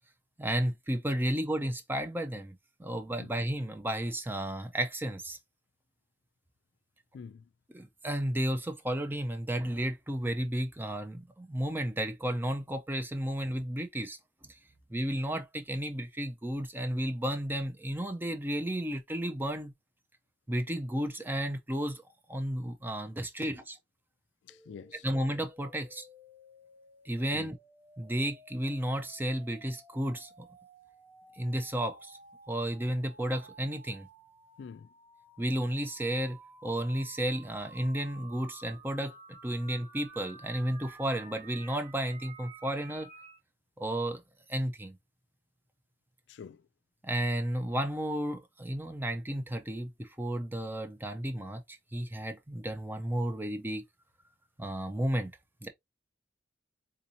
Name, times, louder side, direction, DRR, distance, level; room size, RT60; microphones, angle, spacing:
voice 1, 0.4-5.4 7.7-14.2 14.4-14.6 14.9-19.7 20.5-22.0 22.3-23.8 25.0-26.1 27.0-27.5 28.0-30.5 31.4-32.2 32.5-34.1 35.4-36.4 36.6-43.1 43.8-44.2 44.5-45.0 47.0-53.8 54.6-55.3 55.6-55.7, right 1 dB, 10° right, 0.5 m, -33 dB
voice 2, 7.1-7.5 23.4-23.6 24.4-25.1 27.3-27.5 34.6-34.9 46.3-46.7, left 6 dB, 65° left, 0.3 m, -47 dB
sound 1, 24.5-43.4, right 2 dB, 40° right, 1.2 m, -54 dB
3.8 x 2.7 x 2.8 m
head